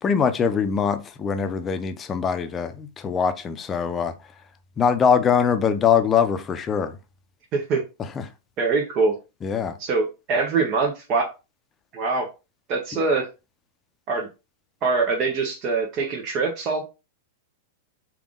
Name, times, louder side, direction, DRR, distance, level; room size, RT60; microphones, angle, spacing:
voice 1, 0.0-4.1 4.8-7.0 8.0-8.3 9.4-9.8, left 7 dB, 25° left, 0.6 m, -22 dB
voice 2, 8.6-9.2 9.8-11.3 11.9-12.3 12.7-13.3 14.1-14.3 14.8-16.8, right 4 dB, 40° right, 0.9 m, -23 dB
3.5 x 2.5 x 3.7 m
hypercardioid pair, 110°, 0 cm